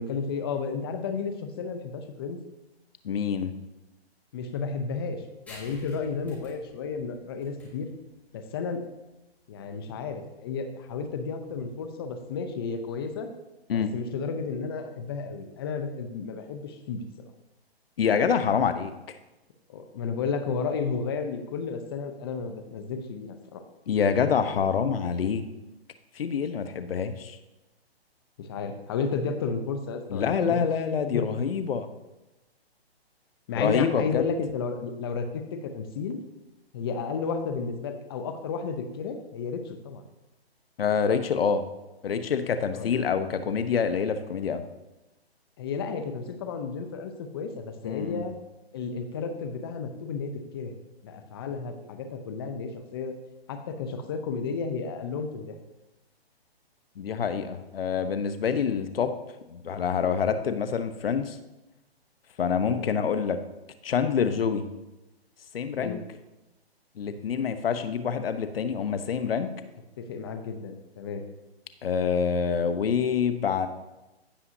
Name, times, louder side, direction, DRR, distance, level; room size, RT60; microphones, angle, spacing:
voice 1, 0.0-2.4 4.3-7.9 8.3-8.8 9.5-13.3 13.9-17.1 19.7-23.6 28.4-30.6 31.1-31.2 33.5-36.2 36.7-40.1 42.7-43.0 45.6-48.3 48.7-50.7 51.0-53.1 53.5-55.5 62.7-62.9 65.8-66.0 70.0-71.2, left 5 dB, 25° left, 7 dB, 0.6 m, -32 dB
voice 2, 3.0-3.5 13.7-13.9 18.0-18.9 23.9-25.4 26.2-27.4 30.1-31.9 33.6-34.2 40.8-41.6 42.0-44.6 47.8-48.2 57.0-59.1 59.5-61.4 62.4-63.4 63.8-64.7 65.5-66.0 67.0-69.5 71.8-73.7, left 6 dB, 65° left, 10 dB, 0.9 m, -26 dB
sound 1, 5.5-12.6, left 1 dB, 5° left, 1.6 m, -53 dB
15.0 x 5.6 x 2.7 m, 1.0 s
hypercardioid pair, 155°, 32 cm